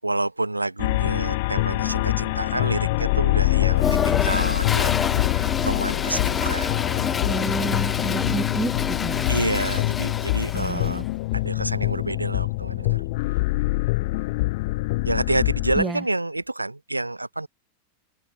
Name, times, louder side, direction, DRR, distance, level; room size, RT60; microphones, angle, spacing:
voice 1, 0.0-6.8 9.3-11.0 11.3-13.0 15.0-17.5, right 2 dB, 85° right, 6.4 m, -28 dB
sound 1, 0.8-15.8, left 21 dB, 50° left, 1.1 m, -24 dB
Toilet flush, 3.7-11.0, left 6 dB, 20° left, 3.9 m, -28 dB
voice 2, 7.2-9.3 10.5-11.1 15.8-16.0, right 3 dB, 10° right, 4.3 m, -30 dB
figure-of-eight pair, 90°, 0 cm